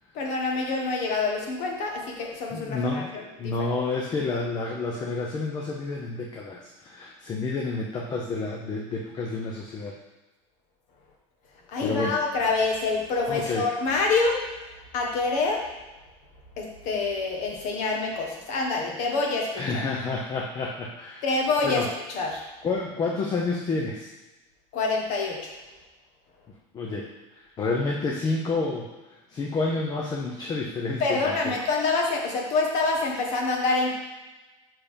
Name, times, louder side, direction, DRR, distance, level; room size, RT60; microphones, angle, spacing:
voice 1, 0.1-3.7 11.7-14.4 14.9-15.7 16.6-19.6 21.2-21.8 22.1-22.4 24.7-25.5 31.0-33.9, left 3 dB, 50° left, 0 dB, 1.5 m, -26 dB
voice 2, 2.5-3.1 3.4-10.0 11.8-12.2 13.3-13.7 19.5-21.2 21.6-21.9 22.6-24.1 26.7-27.1 27.6-28.9 29.3-31.5, left 3 dB, 25° left, 0 dB, 0.7 m, -29 dB
5.7 x 4.8 x 5.1 m, 1.1 s
supercardioid pair, 145°, 16 cm